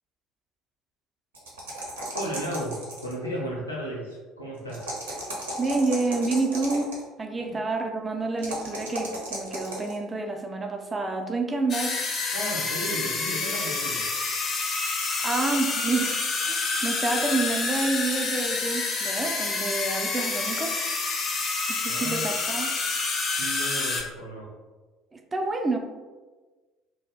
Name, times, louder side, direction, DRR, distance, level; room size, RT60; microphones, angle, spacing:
sound 1, 1.3-3.2 4.7-7.0 8.4-10.0, right 1 dB, 75° right, 0.5 m, -35 dB
voice 1, 2.1-4.9 7.3-7.7 12.3-14.1 21.9-22.3 23.4-24.5, equal, 85° left, -3 dB, 0.6 m, -34 dB
voice 2, 5.6-6.9 7.2-12.0 15.2-20.8 21.7-22.7 25.1-25.8, right 3 dB, 20° right, 4 dB, 0.3 m, -28 dB
sound 2, 11.7-24.0, left 4 dB, 40° left, 0.5 m, -28 dB
2.4 x 2.0 x 3.4 m, 1.3 s
figure-of-eight pair, 60°, 0 cm